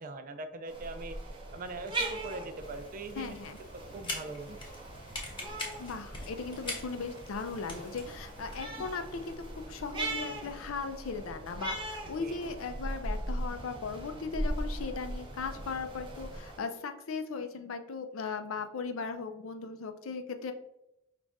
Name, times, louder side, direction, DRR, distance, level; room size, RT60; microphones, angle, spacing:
voice 1, 0.0-4.6 12.2-12.4, right 3 dB, 40° right, 8 dB, 0.4 m, -42 dB
sound 1, 0.7-16.6, right 1 dB, 25° right, 0.8 m, -40 dB
Sandstorm Looping, 1.3-16.4, equal, 80° right, 1.1 m, -49 dB
sound 2, 2.6-10.7, left 2 dB, 25° left, 1.0 m, -45 dB
voice 2, 3.2-3.6 5.8-20.5, left 4 dB, 70° left, 8 dB, 0.5 m, -38 dB
5.2 x 2.5 x 3.4 m, 0.84 s
head